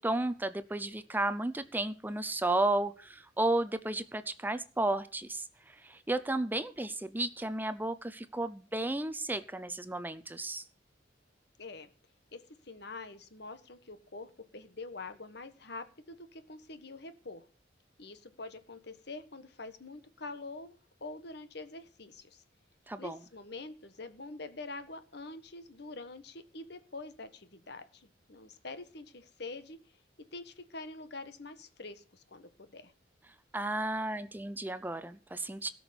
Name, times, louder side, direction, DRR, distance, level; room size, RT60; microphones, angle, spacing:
voice 1, 0.0-5.5 5.8-10.6 22.9-23.2 33.5-35.7, right 2 dB, 10° right, 12 dB, 0.5 m, -33 dB
voice 2, 11.6-11.9 12.3-17.4 18.0-22.4 23.0-29.8 30.3-32.9, left 3 dB, 60° left, 10 dB, 1.4 m, -45 dB
17.5 x 6.1 x 7.0 m, 0.38 s
head